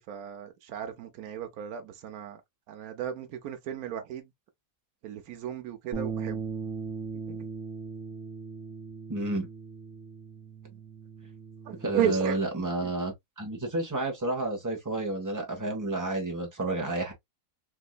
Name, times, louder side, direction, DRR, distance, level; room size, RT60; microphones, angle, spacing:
voice 1, 0.0-2.4 2.7-4.3 5.0-6.4 7.3-7.5 11.6-12.4 12.8-12.9, right 10 dB, 85° right, 1.1 m, -34 dB
sound 1, 5.9-12.2, right 5 dB, 55° right, 1.2 m, -38 dB
voice 2, 9.1-9.5 11.8-17.1, right 2 dB, 15° right, 1.1 m, -30 dB
3.5 x 2.8 x 2.3 m
omnidirectional pair, 1.5 m